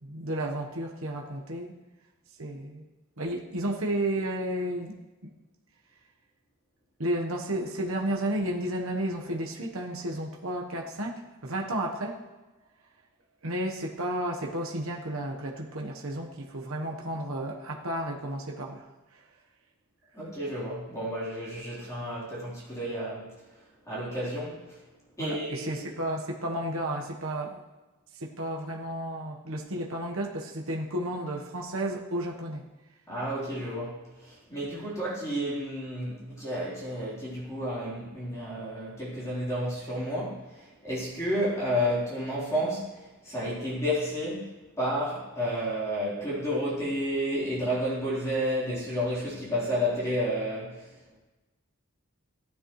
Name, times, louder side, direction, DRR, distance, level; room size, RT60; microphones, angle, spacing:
voice 1, 0.0-1.7 2.4-2.8 3.2-5.0 5.2-5.3 7.0-12.2 13.4-18.9 25.2-27.6 28.1-32.6, right 1 dB, 65° right, 0 dB, 1.3 m, -32 dB
voice 2, 20.1-23.3 23.9-24.8 25.2-25.9 33.1-50.9, equal, 15° left, -9 dB, 3.9 m, -31 dB
15.5 x 11.0 x 3.2 m, 1.1 s
head